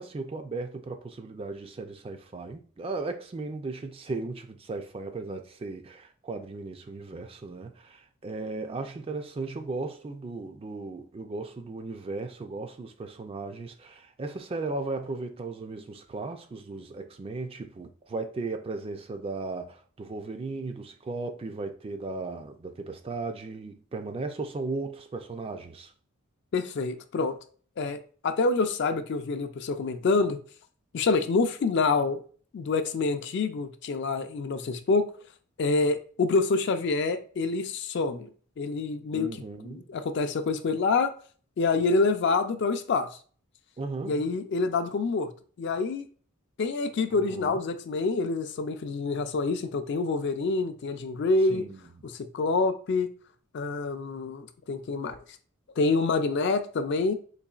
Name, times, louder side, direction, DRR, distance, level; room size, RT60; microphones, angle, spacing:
voice 1, 0.0-25.9 39.1-39.9 43.8-44.3 47.1-47.6 51.5-51.8, right 3 dB, 25° right, 0.3 m, -36 dB
voice 2, 26.5-27.4 27.8-30.4 30.9-32.2 32.5-35.1 35.6-38.3 38.6-39.3 39.6-41.1 41.6-43.2 44.0-45.3 45.6-46.1 46.6-51.7 52.1-53.1 53.5-55.2 55.8-57.1, left 3 dB, 55° left, 0.4 m, -27 dB
3.9 x 3.0 x 2.3 m
head